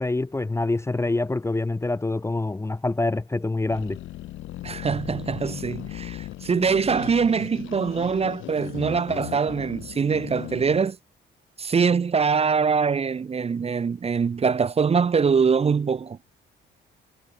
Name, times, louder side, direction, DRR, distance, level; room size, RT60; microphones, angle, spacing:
voice 1, 0.0-4.0, left 2 dB, 15° left, 0.6 m, -26 dB
sound 1, 3.7-10.9, left 15 dB, 90° left, 4.7 m, -37 dB
voice 2, 4.6-11.0 11.6-16.2, right 5 dB, 30° right, 0.7 m, -23 dB
cardioid pair, 90°, 20 cm